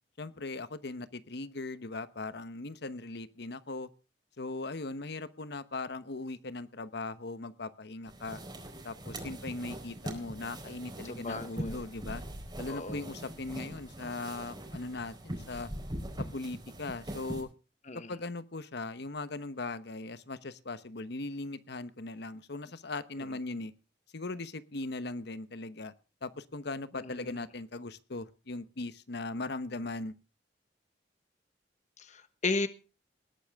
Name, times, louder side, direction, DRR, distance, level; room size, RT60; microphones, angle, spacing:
voice 1, 0.2-3.9 4.4-8.4 8.8-12.2 12.6-15.7 16.3-17.5 17.9-23.7 24.1-25.9 26.2-30.1, left 2 dB, 65° left, 1.0 m, -39 dB
sound 1, 8.1-17.4, right 1 dB, 25° right, 4.2 m, -42 dB
voice 2, 11.1-11.8 12.7-13.0 17.9-18.1 27.0-27.4 32.0-32.7, left 3 dB, 40° left, 1.2 m, -35 dB
19.5 x 12.0 x 3.5 m
head